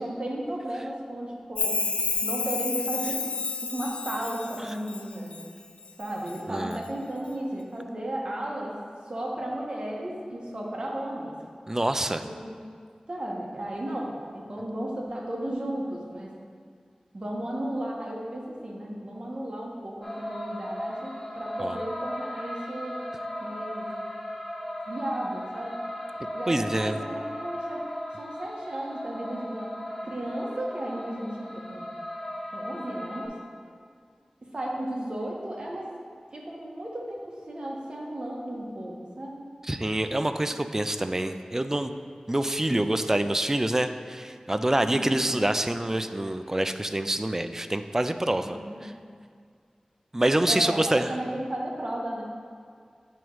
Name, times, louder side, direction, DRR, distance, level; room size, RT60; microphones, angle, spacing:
voice 1, 0.0-1.8 2.2-3.3 3.6-5.4 6.0-8.8 9.0-11.3 12.2-12.5 13.1-16.3 17.1-23.1 23.4-23.9 24.9-25.8 26.3-27.8 28.2-29.7 30.0-31.9 32.5-33.3 34.5-35.9 36.3-39.4 44.8-45.2 48.4-48.8 50.4-52.2, right 1 dB, 50° right, -2 dB, 1.2 m, -34 dB
Chime, 1.5-5.5 5.8-6.4 6.7-6.8, left 4 dB, 75° left, 0.3 m, -30 dB
voice 2, 6.5-6.8 11.7-12.2 21.6-21.8 26.5-27.0 39.7-41.9 42.3-48.6 48.8-48.9 50.1-51.1, right 1 dB, 20° right, 9 dB, 0.3 m, -26 dB
sound 1, 20.0-33.3, equal, 10° left, 1.4 m, -37 dB
8.8 x 3.0 x 4.7 m, 2.1 s
wide cardioid pair, 60°, 2 cm